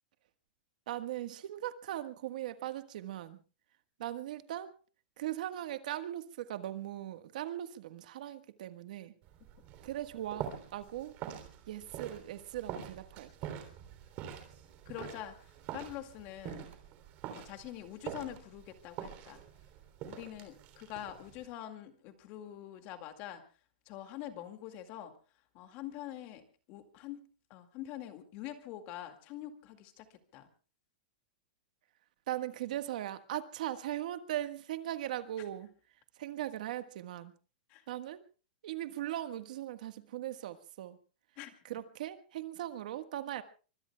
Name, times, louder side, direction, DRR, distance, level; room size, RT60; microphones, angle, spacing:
voice 1, 0.9-3.4 4.0-4.7 5.2-9.1 9.8-11.2 11.7-13.6 32.3-35.7 36.2-37.3 37.9-38.2 38.6-41.0 41.6-43.4, right 12 dB, 60° right, 10 dB, 1.5 m, -39 dB
sound 1, 9.2-21.5, right 9 dB, 30° right, 3.3 m, -46 dB
voice 2, 14.9-15.4 15.7-16.7 17.3-19.4 20.0-23.4 23.9-25.1 25.5-30.1 30.3-30.5 37.7-37.8 41.4-41.5, left 12 dB, 30° left, 7 dB, 2.2 m, -45 dB
25.5 x 24.5 x 2.3 m, 0.36 s
supercardioid pair, 170°, 5 cm